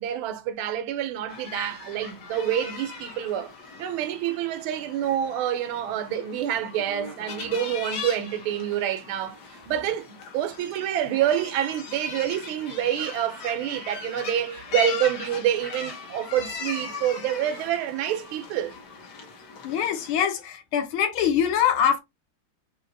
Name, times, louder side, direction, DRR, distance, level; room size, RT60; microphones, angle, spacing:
voice 1, 0.0-3.5 3.8-9.4 9.7-18.7, right 10 dB, 80° right, 1.4 m, -27 dB
sound 1, 1.3-20.1, left 5 dB, 60° left, 1.4 m, -39 dB
voice 2, 19.6-22.0, left 9 dB, 80° left, 1.6 m, -23 dB
4.4 x 2.7 x 2.5 m
omnidirectional pair, 2.3 m